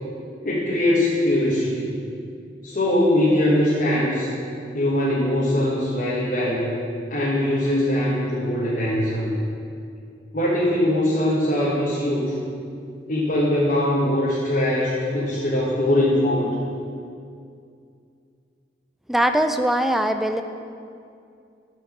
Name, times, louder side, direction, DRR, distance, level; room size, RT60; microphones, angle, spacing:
voice 1, 0.4-1.9 2.6-4.3 4.7-6.7 7.1-9.3 10.3-12.3 13.1-16.5, left 1 dB, 45° left, -6 dB, 1.4 m, -21 dB
voice 2, 19.1-20.4, right 1 dB, ahead, 6 dB, 0.4 m, -21 dB
13.0 x 4.7 x 6.1 m, 2.4 s
head